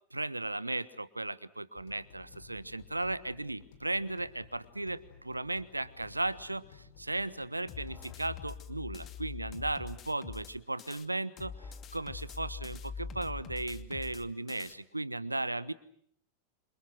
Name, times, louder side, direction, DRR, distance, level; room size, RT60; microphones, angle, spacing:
voice 1, 0.1-15.7, right 2 dB, 85° right, 17 dB, 1.3 m, -36 dB
sound 1, 1.8-8.2, left 7 dB, 60° left, 4.8 m, -56 dB
sound 2, 7.7-11.1 11.4-14.7, left 6 dB, 30° left, 2.5 m, -44 dB
28.0 x 27.0 x 6.3 m, 0.66 s
figure-of-eight pair, 90°, 0 cm